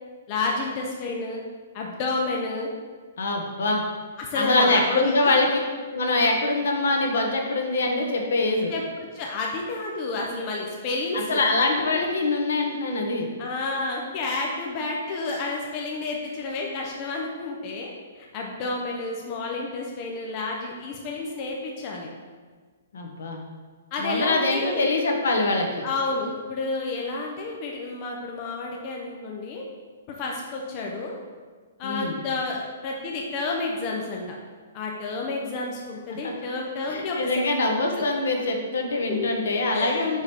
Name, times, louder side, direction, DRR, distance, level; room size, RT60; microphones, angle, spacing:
voice 1, 0.3-1.4 1.7-2.7 4.2-5.3 8.7-8.8 9.1-11.4 13.4-22.1 23.9-24.9 25.8-29.6 30.2-31.2 31.8-34.3 34.7-37.4 38.0-38.1 39.1-39.3 39.7-40.1, left 3 dB, 25° left, -1 dB, 0.5 m, -30 dB
voice 2, 3.2-3.8 4.3-5.5 5.9-8.7 11.1-13.3 22.9-23.4 24.0-25.8 31.8-32.2 36.1-36.3 36.9-40.2, left 2 dB, 70° left, 2 dB, 1.1 m, -24 dB
5.0 x 4.9 x 4.3 m, 1.5 s
hypercardioid pair, 175°, 0 cm